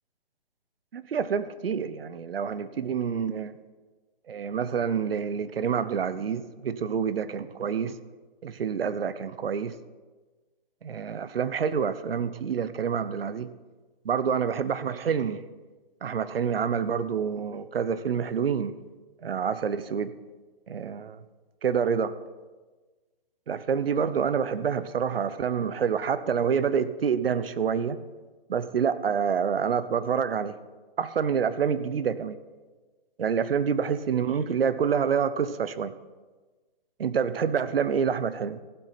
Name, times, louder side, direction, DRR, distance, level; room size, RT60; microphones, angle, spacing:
voice 1, 0.9-3.5 4.3-8.0 8.4-9.7 10.8-13.5 14.0-15.4 16.0-18.7 19.2-20.1 20.7-21.2 21.6-22.2 23.5-28.0 28.5-30.6 31.0-32.3 33.2-35.9 37.0-38.6, right 7 dB, 80° right, 0.9 m, -27 dB
15.0 x 7.7 x 5.9 m
hypercardioid pair, 150°, 29 cm